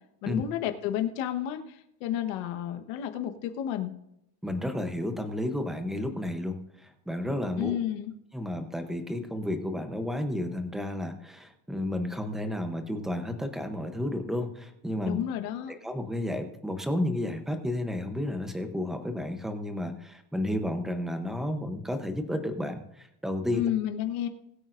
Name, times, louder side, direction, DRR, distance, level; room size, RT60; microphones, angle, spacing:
voice 1, 0.2-3.9 7.6-8.1 15.0-15.7 23.5-24.3, left 11 dB, 70° left, 7 dB, 1.3 m, -31 dB
voice 2, 4.4-7.7 8.3-15.2 15.7-23.7, left 1 dB, ahead, 6 dB, 0.7 m, -32 dB
20.5 x 8.7 x 2.6 m, 0.79 s
cardioid pair, 170°, 47 cm